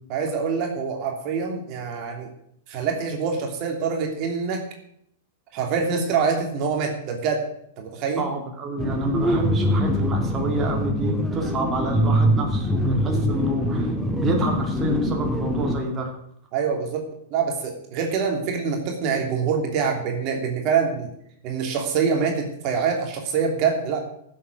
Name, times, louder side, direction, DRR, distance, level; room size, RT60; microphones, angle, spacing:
voice 1, 0.1-2.3 2.7-4.6 5.5-7.4 7.8-8.3 16.5-21.1 21.4-24.0, right 6 dB, 45° right, 3 dB, 2.9 m, -25 dB
voice 2, 8.2-16.1, right 1 dB, 25° right, 1 dB, 3.0 m, -28 dB
sound 1, 8.8-15.8, equal, 5° right, 1.6 m, -23 dB
16.0 x 7.6 x 6.3 m, 0.70 s
hypercardioid pair, 105°, 0 cm